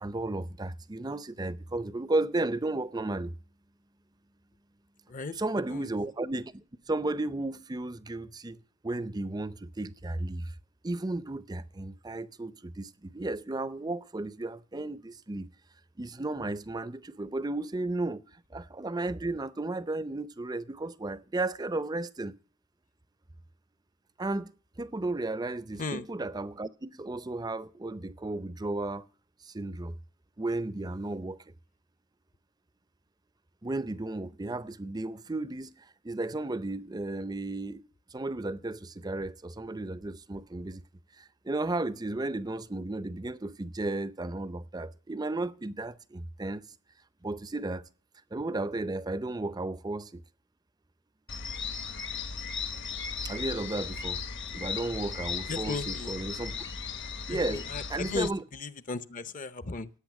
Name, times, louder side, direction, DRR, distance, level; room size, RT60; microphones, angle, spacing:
voice 1, 0.0-3.3 5.4-10.5 10.8-15.5 16.0-18.2 18.5-22.3 24.2-24.5 24.8-29.0 29.5-30.0 30.4-31.4 33.6-37.8 38.1-40.8 41.2-46.6 47.2-47.8 48.3-50.2 53.2-54.2 54.5-56.6 57.3-57.6 57.9-58.4, right 2 dB, 20° right, 0.5 m, -34 dB
sound 1, 51.3-58.3, left 6 dB, 55° left, 1.2 m, -36 dB
voice 2, 55.5-56.1 57.3-59.9, left 3 dB, 35° left, 0.7 m, -36 dB
17.0 x 8.8 x 6.0 m
head